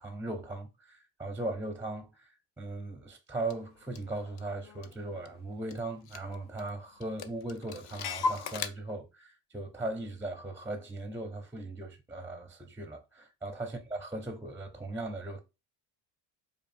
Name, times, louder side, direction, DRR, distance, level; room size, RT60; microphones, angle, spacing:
voice 1, 0.0-15.4, right 2 dB, 5° right, 0.4 m, -38 dB
Clock, 3.5-3.6 4.0-5.4 5.7-5.8 6.1-6.7 7.0-8.7, left 4 dB, 50° left, 0.6 m, -36 dB
4.9 x 2.4 x 2.4 m
supercardioid pair, 85°, 49 cm